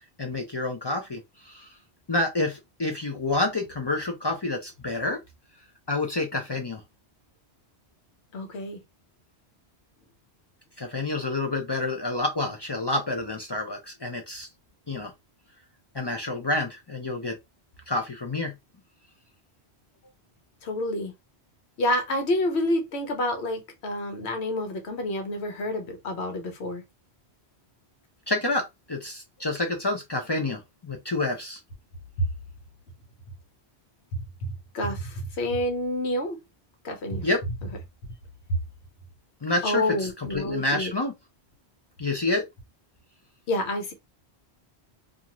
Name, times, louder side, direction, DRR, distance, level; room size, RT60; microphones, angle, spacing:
voice 1, 0.2-1.7 2.1-5.2 5.9-6.8 10.8-14.5 14.9-15.1 15.9-17.4 17.9-18.5 28.3-31.6 37.2-37.4 39.4-41.1 42.0-42.4, left 2 dB, 40° left, 0.4 m, -28 dB
voice 2, 8.3-8.8 20.6-21.1 21.8-26.8 34.7-36.4 36.8-37.3 39.6-40.9 43.5-43.9, left 1 dB, 80° left, 1.1 m, -28 dB
2.5 x 2.4 x 2.9 m
omnidirectional pair, 1.1 m